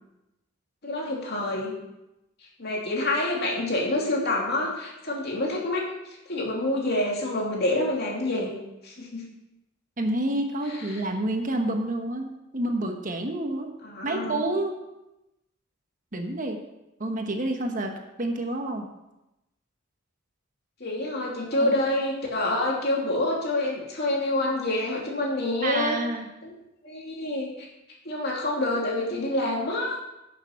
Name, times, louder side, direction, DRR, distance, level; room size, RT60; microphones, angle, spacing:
voice 1, 0.8-1.7 2.6-5.8 6.3-8.5 8.8-9.3 10.7-11.0 13.8-14.4 20.8-26.0 26.4-26.5 26.8-27.7 28.0-30.0, left 1 dB, 55° left, -2 dB, 2.7 m, -27 dB
voice 2, 10.0-13.7 14.0-14.8 16.1-16.6 17.0-18.9 21.5-21.7 25.6-26.3, right 1 dB, 40° right, 4 dB, 1.2 m, -28 dB
11.0 x 6.7 x 5.8 m, 0.93 s
head